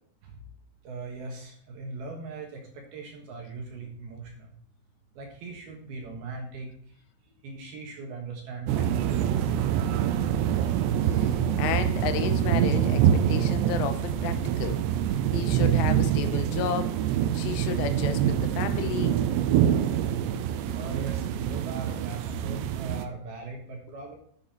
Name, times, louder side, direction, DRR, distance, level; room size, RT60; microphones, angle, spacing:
voice 1, 0.8-4.5 5.1-6.7 7.4-9.5 20.7-24.2, right 3 dB, 65° right, 1 dB, 2.9 m, -40 dB
sound 1, 8.7-23.1, right 10 dB, 85° right, 2.5 m, -25 dB
voice 2, 11.0-14.8 15.3-17.0 17.3-19.2, left 10 dB, 85° left, 10 dB, 3.3 m, -32 dB
11.0 x 8.0 x 4.3 m, 0.62 s
omnidirectional pair, 5.8 m